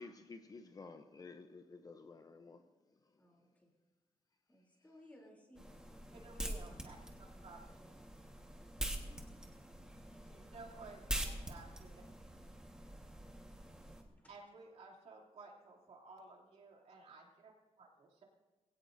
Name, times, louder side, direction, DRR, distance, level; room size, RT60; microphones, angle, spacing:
voice 1, 0.0-2.6, left 3 dB, 35° left, 0.6 m, -52 dB
voice 2, 3.2-3.7 4.5-6.4 7.7-7.9 8.8-9.4 10.1-10.7 13.7-14.4, equal, 15° left, 3.2 m, -63 dB
sound 1, 5.6-14.0, right 1 dB, 5° right, 1.4 m, -45 dB
voice 3, 6.1-7.6 10.5-12.0 14.3-17.5 17.8-18.2, right 3 dB, 65° right, 2.9 m, -55 dB
21.0 x 17.0 x 2.6 m
wide cardioid pair, 165°, 11 cm